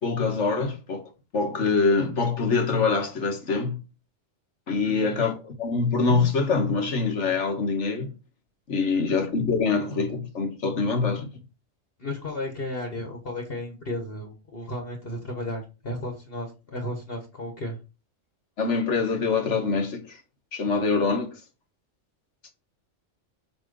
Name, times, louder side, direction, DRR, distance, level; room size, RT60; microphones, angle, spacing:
voice 1, 0.0-3.8 4.7-8.1 8.7-11.3 18.6-20.2 20.5-21.4, left 4 dB, 65° left, 1.7 m, -25 dB
voice 2, 12.0-17.8, left 1 dB, 50° left, 1.8 m, -34 dB
8.2 x 3.5 x 5.3 m
omnidirectional pair, 1.3 m